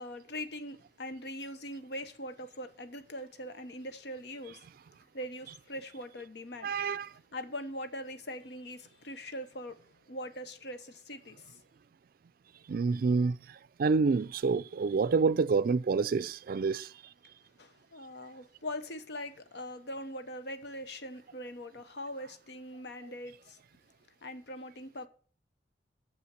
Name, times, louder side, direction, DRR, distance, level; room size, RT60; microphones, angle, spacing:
voice 1, 0.0-4.6 5.1-6.7 7.3-9.8 10.1-11.6 17.6-23.6 24.2-25.1, left 1 dB, 65° left, 0.9 m, -42 dB
voice 2, 6.6-7.1 12.7-13.4 13.8-16.9, right 4 dB, 55° right, 0.4 m, -27 dB
7.1 x 5.7 x 7.5 m
head